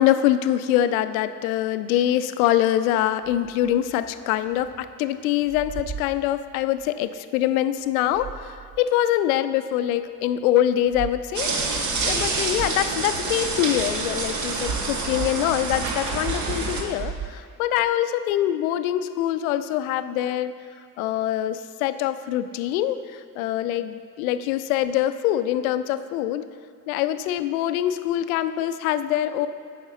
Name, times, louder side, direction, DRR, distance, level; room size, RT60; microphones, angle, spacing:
voice 1, 0.0-20.5 21.0-26.5 26.9-29.5, left 12 dB, 65° left, 12 dB, 0.5 m, -24 dB
sound 1, 3.2-4.9 5.2-6.9 7.8-8.9 9.4-9.5 10.7-11.2 11.6-11.7 12.2-12.3 12.5-13.8 16.8-17.9, right 7 dB, 20° right, 0.5 m, -39 dB
sound 2, 11.3-16.8, right 3 dB, 40° right, 1.1 m, -27 dB
9.2 x 6.4 x 4.1 m, 2.1 s
figure-of-eight pair, 50°, 46 cm